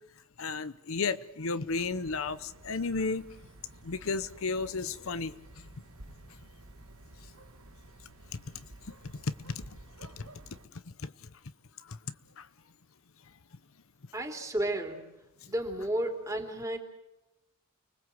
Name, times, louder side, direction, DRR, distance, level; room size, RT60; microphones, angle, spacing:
voice 1, 0.4-3.3 3.8-5.6 8.3-8.7 9.1-9.6 10.2-10.3 10.7-11.3 11.8-12.0 12.4-12.5, left 4 dB, 65° left, 0.8 m, -34 dB
sound 1, 1.7-10.7, right 1 dB, 75° right, 1.9 m, -52 dB
voice 2, 14.1-15.1 15.5-16.8, right 1 dB, 15° right, 3.4 m, -32 dB
30.0 x 20.5 x 7.8 m
head